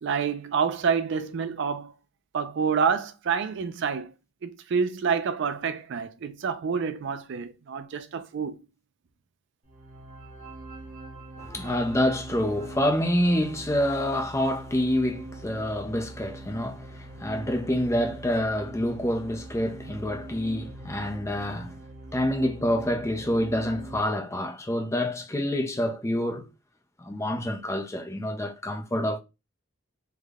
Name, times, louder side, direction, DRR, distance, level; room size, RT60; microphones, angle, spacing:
voice 1, 0.0-1.9 2.3-4.1 4.4-8.6, right 6 dB, 60° right, 0.4 m, -28 dB
sound 1, 9.6-24.0, right 2 dB, 40° right, 0.8 m, -43 dB
voice 2, 11.4-21.8 22.1-26.5 27.0-29.2, left 1 dB, 15° left, 0.5 m, -27 dB
3.4 x 2.1 x 3.4 m
head